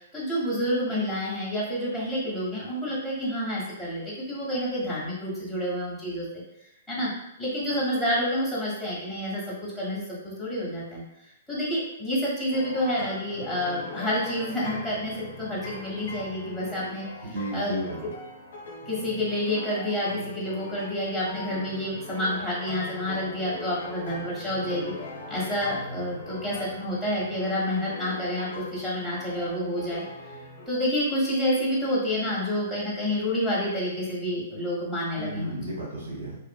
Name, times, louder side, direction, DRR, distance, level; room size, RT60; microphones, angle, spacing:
voice 1, 0.0-6.4 6.9-7.1 7.4-11.0 11.5-17.0 17.5-17.7 18.9-24.9 25.3-30.3 30.7-35.6, equal, ahead, -8 dB, 1.0 m, -29 dB
sound 1, 12.5-30.7, left 3 dB, 70° left, 0.5 m, -40 dB
voice 2, 17.2-18.1 35.1-36.4, right 1 dB, 90° right, -4 dB, 1.2 m, -33 dB
2.7 x 2.4 x 2.2 m, 0.86 s
hypercardioid pair, 145°, 0 cm